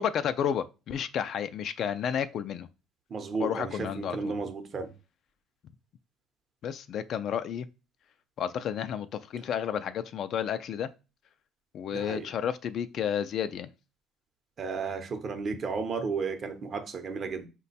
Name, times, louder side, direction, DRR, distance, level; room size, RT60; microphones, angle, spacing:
voice 1, 0.0-2.7 3.4-4.3 6.6-7.7 8.4-10.9 11.7-13.7, left 8 dB, 60° left, 0.3 m, -31 dB
voice 2, 3.1-4.9 11.9-12.3 14.6-17.5, right 4 dB, 45° right, 0.7 m, -33 dB
5.0 x 2.2 x 4.0 m
cardioid pair, 100°, 0 cm